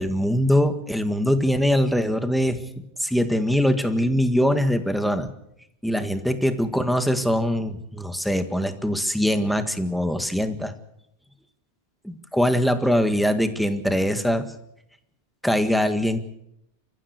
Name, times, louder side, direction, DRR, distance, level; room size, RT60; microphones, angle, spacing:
voice 1, 0.0-2.6 3.0-5.3 5.8-10.7 12.0-14.4 15.4-16.2, equal, ahead, 8 dB, 1.7 m, -22 dB
28.0 x 15.0 x 8.2 m, 0.80 s
omnidirectional pair, 1.1 m